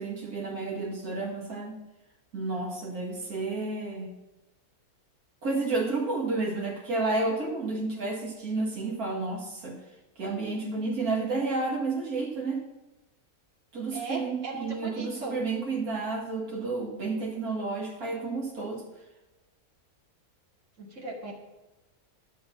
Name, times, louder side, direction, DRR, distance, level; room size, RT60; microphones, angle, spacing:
voice 1, 0.0-1.8 2.3-4.1 5.4-9.8 10.2-12.6 13.7-18.8, right 3 dB, 80° right, -1 dB, 2.3 m, -31 dB
voice 2, 13.9-15.4 20.8-21.3, right 3 dB, 55° right, -2 dB, 2.6 m, -37 dB
11.0 x 6.5 x 5.7 m, 1.1 s
omnidirectional pair, 1.6 m